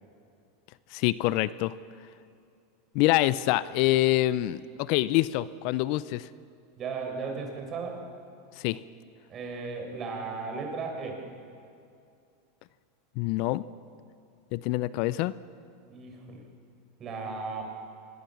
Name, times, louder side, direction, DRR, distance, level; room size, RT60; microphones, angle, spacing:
voice 1, 0.9-1.7 2.9-6.3 8.6-8.8 13.2-13.6 14.5-15.3, left 16 dB, 55° left, 18 dB, 0.6 m, -26 dB
voice 2, 6.8-8.1 9.3-11.3 15.9-16.4 17.0-17.6, right 4 dB, 35° right, 2 dB, 5.8 m, -35 dB
25.5 x 21.0 x 7.2 m, 2.4 s
hypercardioid pair, 100°, 0 cm